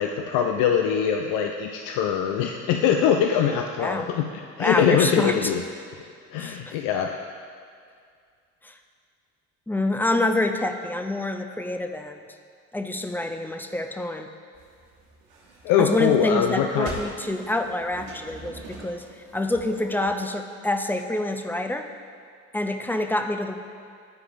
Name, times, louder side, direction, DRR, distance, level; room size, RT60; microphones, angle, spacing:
voice 1, 0.0-4.3 4.6-5.6 6.3-7.1 15.6-17.0, left 8 dB, 65° left, 3 dB, 0.5 m, -23 dB
voice 2, 4.6-5.5 6.4-6.8 8.6-8.7 9.7-12.2 12.7-14.3 15.8-19.0 19.3-21.9 22.5-23.5, left 1 dB, 5° left, 5 dB, 0.4 m, -26 dB
sound 1, 14.5-20.1, right 3 dB, 75° right, 1.1 m, -43 dB
10.0 x 4.8 x 2.6 m, 2.2 s
hypercardioid pair, 50°, 36 cm